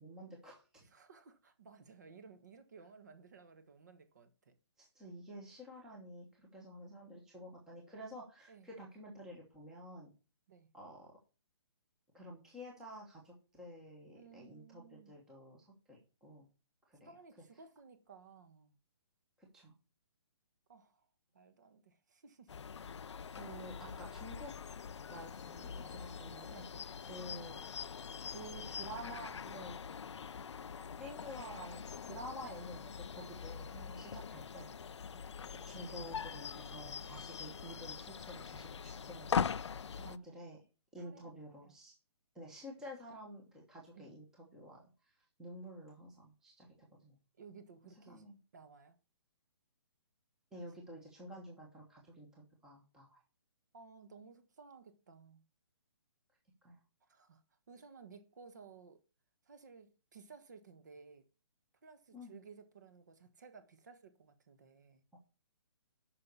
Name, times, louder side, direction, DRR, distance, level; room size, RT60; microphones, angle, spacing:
voice 1, 0.0-0.8 4.8-10.1 10.7-11.1 12.1-16.5 16.9-17.1 19.4-19.7 23.3-24.5 25.1-26.7 27.0-27.6 28.2-29.8 31.0-34.7 35.5-39.3 39.9-40.6 40.9-42.0 42.3-44.8 45.4-46.7 47.0-47.1 48.1-48.4 50.5-53.2 56.6-56.8 62.1-62.3 65.1-65.2, equal, 5° right, 1.1 m, -50 dB
voice 2, 0.8-4.5 8.5-8.7 10.5-10.7 14.1-15.1 17.0-18.8 20.7-21.0 21.3-22.5 23.8-24.0 25.7-26.1 33.9-34.1 35.1-35.3 39.8-40.3 41.0-41.7 43.9-44.1 47.4-48.3 48.5-49.0 53.7-55.4 57.0-57.4 57.7-59.0 59.5-61.3 61.8-65.0, right 5 dB, 40° right, 1.4 m, -57 dB
sound 1, 22.5-40.2, left 6 dB, 85° left, 0.6 m, -43 dB
8.9 x 5.9 x 6.7 m
hypercardioid pair, 180°, 15 cm